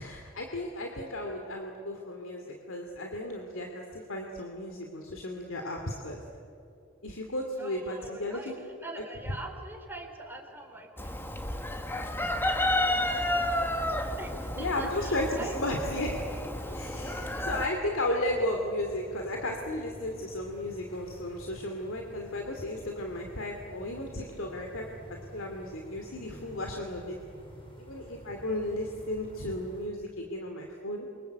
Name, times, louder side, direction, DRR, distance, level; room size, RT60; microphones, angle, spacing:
voice 1, 0.0-6.2 7.0-8.4 14.6-16.1 16.7-24.9 25.3-27.2 27.8-31.1, left 1 dB, 85° left, 2 dB, 2.8 m, -34 dB
voice 2, 7.6-11.8 12.5-13.2 14.2-15.8 16.6-17.4, right 2 dB, 10° right, 2 dB, 4.1 m, -44 dB
sound 1, 11.0-29.9, equal, 25° left, 4.7 m, -50 dB
Chicken rooster, 11.0-17.7, left 1 dB, 10° left, 1.5 m, -31 dB
28.5 x 25.0 x 8.3 m, 2.7 s
head